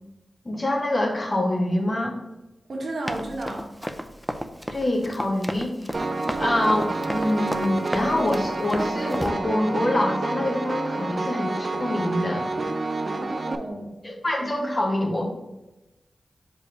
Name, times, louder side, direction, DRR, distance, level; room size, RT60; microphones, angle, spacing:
voice 1, 0.4-2.2 4.7-6.0 6.4-12.5 14.0-15.3, left 1 dB, 40° left, 0 dB, 1.4 m, -25 dB
voice 2, 2.7-3.7 13.0-14.1, right 1 dB, 70° right, -1 dB, 1.2 m, -33 dB
Run, 3.1-9.3, equal, ahead, 0.6 m, -33 dB
Piano, 5.9-13.5, right 3 dB, 50° right, 0.5 m, -28 dB
5.3 x 3.4 x 5.2 m, 0.98 s
cardioid pair, 60°, 0 cm